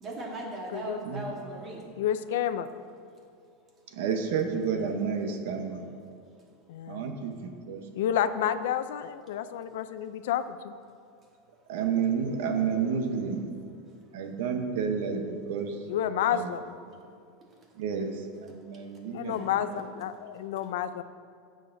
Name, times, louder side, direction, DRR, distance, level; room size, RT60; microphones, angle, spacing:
voice 1, 0.0-1.8 19.2-19.5, right 2 dB, 20° right, -2 dB, 1.4 m, -38 dB
voice 2, 2.0-2.7 6.7-7.1 8.0-10.7 15.9-16.6 19.1-21.0, left 10 dB, 75° left, 12 dB, 0.4 m, -30 dB
voice 3, 3.9-5.8 6.9-7.8 11.7-13.4 14.1-15.2 15.5-15.8 16.3-16.5 16.9-17.0 17.8-18.1 18.4-19.8, right 6 dB, 70° right, 5 dB, 0.9 m, -30 dB
14.5 x 6.4 x 2.6 m, 2.3 s
supercardioid pair, 175°, 0 cm